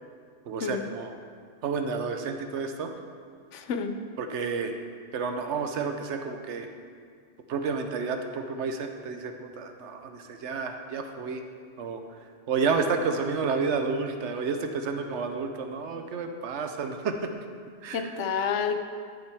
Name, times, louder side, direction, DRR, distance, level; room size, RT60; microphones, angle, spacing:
voice 1, 0.5-1.1 1.6-2.9 4.2-4.7 5.1-6.7 7.5-11.4 11.8-12.0 12.5-17.3 17.8-18.3, right 5 dB, 75° right, 6 dB, 1.0 m, -30 dB
voice 2, 3.5-4.0 17.9-18.7, left 6 dB, 85° left, 7 dB, 1.0 m, -29 dB
13.0 x 5.6 x 3.5 m, 2.1 s
omnidirectional pair, 1.2 m